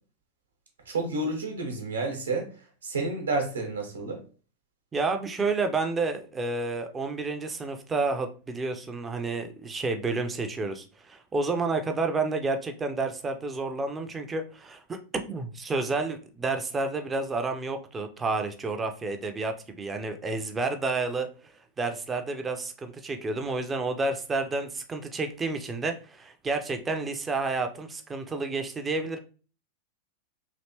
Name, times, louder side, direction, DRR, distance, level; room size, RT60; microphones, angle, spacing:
voice 1, 0.9-2.5 2.8-4.2, right 2 dB, 70° right, 2 dB, 1.0 m, -30 dB
voice 2, 4.9-21.3 21.8-29.2, right 3 dB, 15° right, 6 dB, 0.5 m, -30 dB
3.1 x 2.8 x 2.8 m, 0.37 s
figure-of-eight pair, 90°, 0 cm